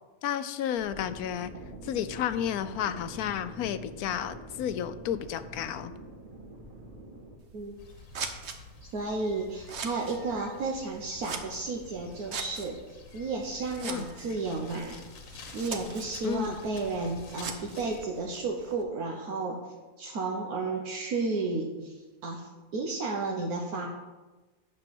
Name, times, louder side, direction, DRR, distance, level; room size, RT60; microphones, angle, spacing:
voice 1, 0.2-1.5 1.8-5.9 13.8-14.0 16.2-16.6, left 10 dB, 85° left, 12 dB, 1.1 m, -32 dB
sound 1, 0.8-7.4, right 2 dB, 25° right, 1.9 m, -45 dB
Scissors, 7.4-18.8, right 5 dB, 50° right, 1.1 m, -43 dB
sound 2, 7.8-18.1, left 5 dB, 65° left, 1.3 m, -50 dB
voice 2, 8.9-15.0 15.5-19.6 20.0-22.0 22.2-23.9, right 3 dB, 80° right, 0 dB, 1.5 m, -32 dB
8.9 x 6.0 x 7.6 m, 1.2 s
omnidirectional pair, 1.6 m